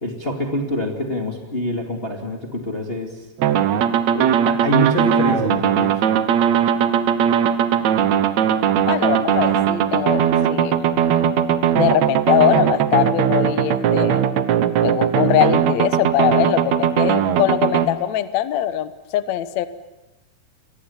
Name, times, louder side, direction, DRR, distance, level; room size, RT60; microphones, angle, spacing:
voice 1, 0.0-3.3 4.1-6.0, left 1 dB, 20° left, 1 dB, 2.0 m, -25 dB
sound 1, 3.4-17.9, right 9 dB, 65° right, 2.1 m, -19 dB
voice 2, 8.9-10.8 11.8-14.2 14.8-19.7, left 12 dB, 65° left, 12 dB, 2.0 m, -21 dB
29.0 x 23.0 x 7.2 m, 1.0 s
omnidirectional pair, 4.2 m